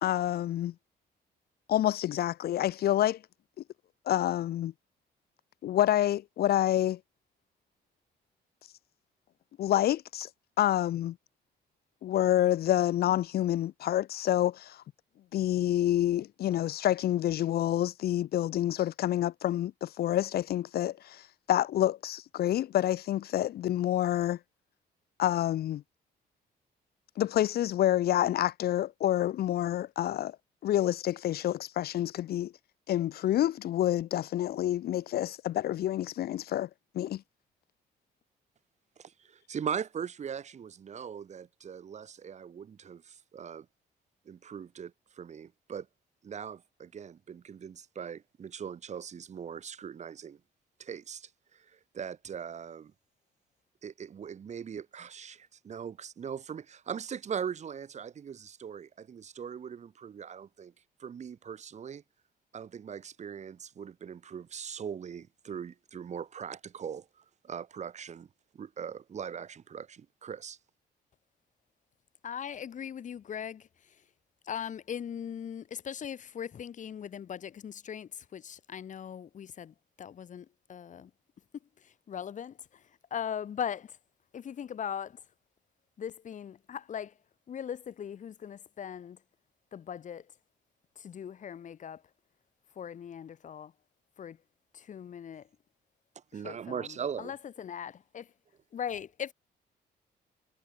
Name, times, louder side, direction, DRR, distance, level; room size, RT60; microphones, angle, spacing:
voice 1, 0.0-0.7 1.7-3.2 4.1-4.7 5.6-7.0 9.6-10.3 10.6-11.1 12.0-14.8 15.3-24.4 25.2-25.8 27.2-30.3 30.6-32.5 32.9-36.7 36.9-37.2, left 12 dB, 65° left, 0.9 m, -28 dB
voice 2, 39.0-43.7 44.2-45.9 46.2-50.4 50.8-52.9 53.8-60.7 61.0-62.0 62.5-68.3 68.5-70.6 96.1-97.3, right 7 dB, 45° right, 3.1 m, -40 dB
voice 3, 72.2-74.0 74.4-81.1 81.8-84.0 84.3-85.2 86.0-87.2 87.5-89.2 89.7-90.3 91.0-92.0 92.7-93.7 94.2-94.4 94.7-95.5 96.3-98.3 98.7-99.3, left 8 dB, 50° left, 2.5 m, -40 dB
cardioid pair, 135°, 17 cm